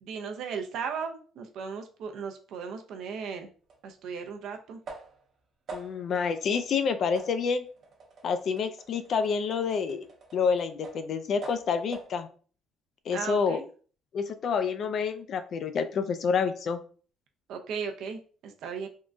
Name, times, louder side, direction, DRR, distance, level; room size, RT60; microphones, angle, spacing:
voice 1, 0.0-3.5 3.8-4.8 13.1-13.6 17.5-18.9, right 6 dB, 70° right, 5 dB, 0.5 m, -36 dB
sound 1, 3.7-3.8 4.9-5.3 5.7-6.1 6.5-6.8 7.2-11.1 11.4-12.2, right 3 dB, 40° right, 0.7 m, -46 dB
voice 2, 5.7-7.7 8.2-10.1 10.3-12.3 13.1-13.6 14.1-16.8, left 5 dB, 50° left, 10 dB, 0.3 m, -28 dB
3.6 x 2.1 x 2.4 m, 0.41 s
cardioid pair, 160°, 0 cm